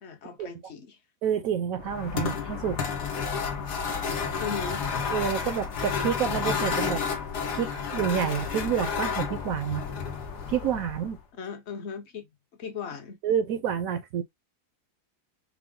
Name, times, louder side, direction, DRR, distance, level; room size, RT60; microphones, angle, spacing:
voice 1, 0.0-1.0 4.4-4.8 11.4-12.3 12.6-13.2, left 6 dB, 50° left, 1.1 m, -37 dB
voice 2, 1.2-2.8 5.1-7.0 7.5-9.9 10.5-11.2 13.2-14.2, right 8 dB, 70° right, 1.0 m, -28 dB
sound 1, 1.8-11.2, left 6 dB, 90° left, 1.5 m, -31 dB
4.9 x 2.0 x 3.6 m
omnidirectional pair, 1.7 m